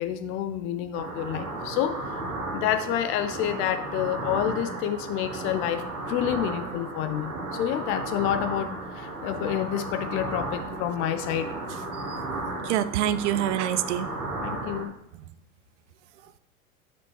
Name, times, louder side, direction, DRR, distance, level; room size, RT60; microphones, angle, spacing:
voice 1, 0.0-2.1 2.5-11.5 14.4-14.9, left 10 dB, 30° left, 10 dB, 0.4 m, -28 dB
sound 1, 0.9-14.9, right 2 dB, 90° right, 1.3 m, -34 dB
voice 2, 12.6-14.1 16.2-16.4, right 11 dB, 55° right, 14 dB, 0.5 m, -27 dB
7.0 x 5.9 x 3.1 m, 0.82 s
figure-of-eight pair, 90°, 43 cm